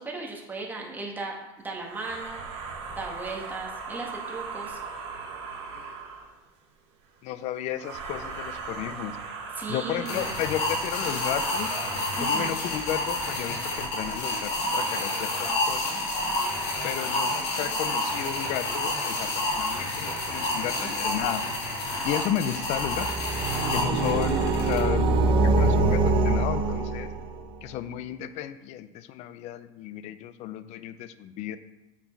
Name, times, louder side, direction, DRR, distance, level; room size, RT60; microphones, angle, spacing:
voice 1, 0.0-2.5 2.9-4.8 9.3-10.3 12.2-12.5, right 3 dB, 10° right, -1 dB, 1.7 m, -37 dB
sound 1, 1.8-6.4 7.7-13.2, right 5 dB, 80° right, 2.0 m, -38 dB
voice 2, 7.2-9.2 9.7-11.7 12.2-16.0 16.8-21.5 22.0-23.1 23.7-27.1 27.6-31.6, left 11 dB, 50° left, 13 dB, 0.6 m, -33 dB
sound 2, 10.1-24.8, left 2 dB, 75° left, 3.1 m, -29 dB
sound 3, 22.8-27.5, right 3 dB, 35° right, 0.9 m, -24 dB
8.3 x 6.1 x 4.7 m, 1.0 s
supercardioid pair, 125°, 14 cm